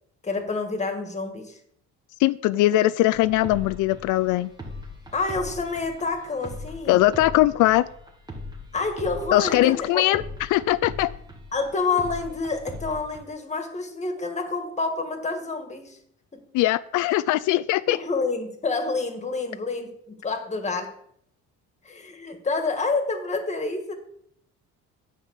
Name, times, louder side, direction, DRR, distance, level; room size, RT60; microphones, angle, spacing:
voice 1, 0.2-1.6 5.1-7.0 8.7-10.1 11.5-16.0 16.3-16.4 17.9-21.0 21.8-23.9, left 3 dB, 25° left, 6 dB, 1.8 m, -28 dB
voice 2, 2.2-4.5 6.9-7.9 9.3-10.2 10.5-11.1 16.5-18.0, left 16 dB, 85° left, 14 dB, 0.5 m, -20 dB
sound 1, 3.1-13.2, left 1 dB, 15° right, 1.8 m, -40 dB
9.2 x 5.7 x 8.2 m, 0.68 s
cardioid pair, 130°, 30 cm